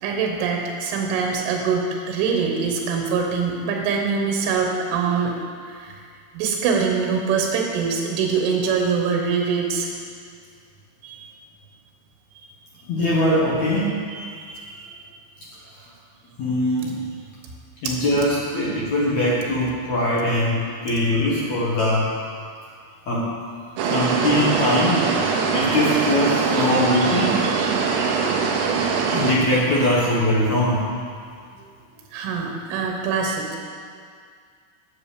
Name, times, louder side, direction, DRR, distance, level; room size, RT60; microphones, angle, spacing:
voice 1, 0.0-5.4 5.8-5.9 6.4-9.9 11.0-11.3 14.1-14.9 17.9-18.0 32.1-33.6, right 5 dB, 90° right, 1 dB, 3.6 m, -24 dB
voice 2, 12.9-14.1 16.4-17.1 17.8-20.6 20.8-22.1 23.1-23.3 23.8-25.1 25.5-27.5 29.1-31.0, left 1 dB, 85° left, -5 dB, 1.6 m, -21 dB
sound 1, 23.8-29.3, right 5 dB, 75° right, 2.8 m, -22 dB
11.0 x 7.8 x 6.7 m, 2.1 s
omnidirectional pair, 5.4 m